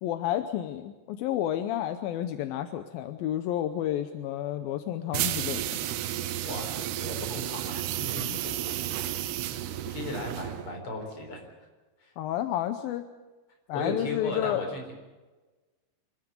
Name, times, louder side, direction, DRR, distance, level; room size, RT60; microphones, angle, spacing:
voice 1, 0.0-5.8 8.3-8.4 12.2-13.1 13.7-14.6, left 12 dB, 75° left, 9 dB, 2.2 m, -31 dB
sound 1, 5.1-10.8, right 13 dB, 75° right, 2.7 m, -32 dB
voice 2, 6.4-9.1 9.6-11.5 12.0-12.1 13.7-14.8, left 2 dB, 30° left, 2 dB, 4.6 m, -37 dB
25.0 x 13.5 x 9.5 m, 1.2 s
omnidirectional pair, 5.1 m